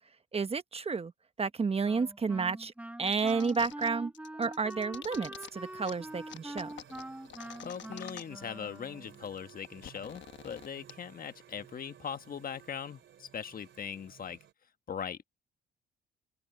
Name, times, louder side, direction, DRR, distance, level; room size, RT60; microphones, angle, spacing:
voice 1, 0.3-1.1 1.4-2.7 3.0-4.1 4.4-6.7, right 4 dB, 30° right, 1.1 m, -31 dB
Wind instrument woodwind instrument, 1.8-9.3, right 1 dB, 5° right, 1.2 m, -45 dB
sound 1, 3.1-3.9 4.1-5.5 5.8-5.9 6.3-8.5 8.8-8.9 9.0-10.9, left 10 dB, 65° left, 1.2 m, -47 dB
sound 2, 5.3-14.5, right 10 dB, 70° right, 3.7 m, -57 dB
voice 2, 7.6-14.4 14.9-15.2, left 7 dB, 45° left, 1.3 m, -40 dB
open air
cardioid pair, 90°, 20 cm